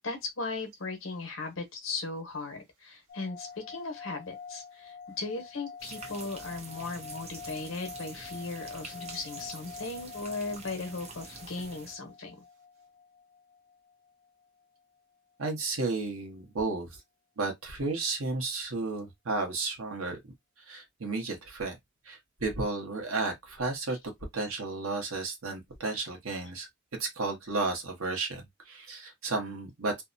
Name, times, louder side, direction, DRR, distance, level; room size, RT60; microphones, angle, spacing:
voice 1, 0.0-12.4, left 3 dB, 70° left, 0.9 m, -37 dB
sound 1, 3.1-14.4, left 6 dB, 50° left, 0.4 m, -47 dB
sound 2, 5.8-11.9, right 3 dB, 30° right, 0.6 m, -46 dB
voice 2, 15.4-16.9 17.4-20.2 20.7-21.8 22.0-24.0 24.3-26.7 27.0-30.0, right 3 dB, 85° right, 1.0 m, -33 dB
2.7 x 2.1 x 2.5 m
head